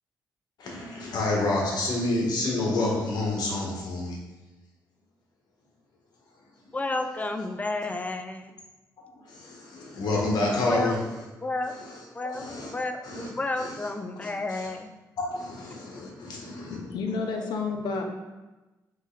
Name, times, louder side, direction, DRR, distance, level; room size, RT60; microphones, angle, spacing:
voice 1, 0.6-4.2 6.6-6.7 9.1-11.2 11.6-12.0 12.3-12.7 13.0-13.3 13.6-13.9 14.2-14.7 15.2-16.8, left 2 dB, 75° left, -2 dB, 1.2 m, -29 dB
voice 2, 6.7-8.5 10.7-11.0 11.4-11.7 12.1-12.4 12.7-14.9, left 2 dB, 20° left, 7 dB, 0.4 m, -31 dB
voice 3, 16.7-18.0, left 4 dB, 90° left, 3 dB, 0.6 m, -30 dB
3.8 x 3.1 x 3.9 m, 1.1 s
cardioid pair, 80°, 7 cm